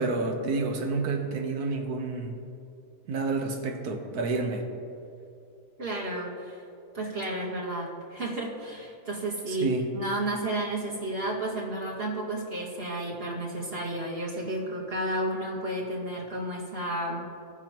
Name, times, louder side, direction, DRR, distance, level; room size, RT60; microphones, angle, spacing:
voice 1, 0.0-2.4 3.1-4.7 9.5-9.8, right 3 dB, 85° right, 4 dB, 1.5 m, -29 dB
voice 2, 5.8-6.6 6.9-17.2, right 1 dB, 40° right, -5 dB, 2.1 m, -32 dB
18.0 x 6.0 x 2.9 m, 2.6 s
omnidirectional pair, 1.6 m